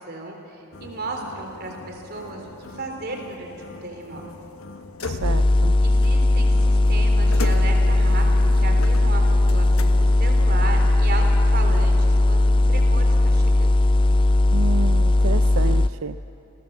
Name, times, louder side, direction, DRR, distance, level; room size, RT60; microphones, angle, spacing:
voice 1, 0.0-3.5 3.8-4.2 5.8-8.2 8.6-9.2 9.5-11.3 11.5-13.8, right 3 dB, 50° right, 3 dB, 3.7 m, -34 dB
sound 1, 0.7-10.4, left 3 dB, 85° left, 1.3 m, -39 dB
voice 2, 5.0-5.8 14.5-16.2, right 5 dB, 85° right, 11 dB, 0.5 m, -30 dB
sound 2, 5.2-15.9, left 2 dB, 25° left, 0.4 m, -18 dB
29.0 x 19.0 x 7.5 m, 2.8 s
head